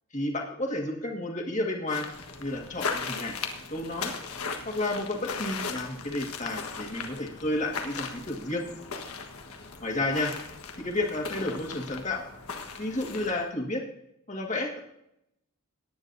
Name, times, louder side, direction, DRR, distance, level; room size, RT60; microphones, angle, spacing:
voice 1, 0.1-2.1 2.4-3.4 3.7-4.1 4.6-8.6 9.8-10.3 10.8-12.2 12.8-13.8 14.3-14.8, left 2 dB, 35° left, 1 dB, 1.8 m, -31 dB
sound 1, 1.9-13.5, left 5 dB, 75° left, 1.4 m, -38 dB
18.5 x 9.8 x 2.7 m, 0.78 s
head